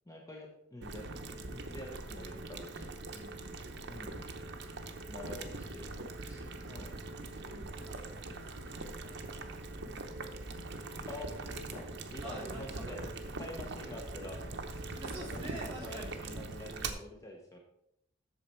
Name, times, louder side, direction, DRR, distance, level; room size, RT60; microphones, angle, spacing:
voice 1, 0.1-2.9 3.9-4.2 5.1-5.9 6.2-6.9 11.1-13.0 13.4-14.4 15.2-15.4 15.8-17.6, left 1 dB, 15° left, 0 dB, 1.0 m, -47 dB
Boiling, 0.8-16.9, right 3 dB, 65° right, 0.9 m, -42 dB
voice 2, 3.1-4.1 5.8-6.1 7.2-10.0 12.2-13.1 13.8-14.0 15.0-16.3, right 1 dB, 25° right, -4 dB, 3.2 m, -49 dB
8.3 x 6.7 x 4.5 m, 0.76 s
head